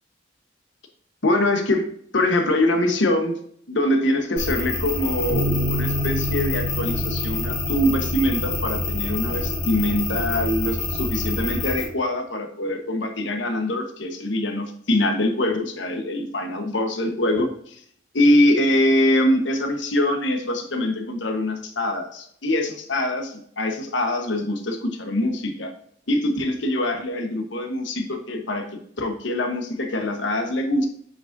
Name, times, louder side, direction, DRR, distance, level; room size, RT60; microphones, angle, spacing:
voice 1, 1.2-3.4 3.7-17.8 18.1-25.7 26.1-28.6 29.0-30.9, left 1 dB, 75° left, 5 dB, 1.1 m, -23 dB
sound 1, 4.4-11.8, left 2 dB, 55° left, 2.8 m, -27 dB
Bass guitar, 5.3-11.5, equal, 75° right, 1.3 m, -31 dB
7.9 x 5.1 x 2.6 m, 0.64 s
head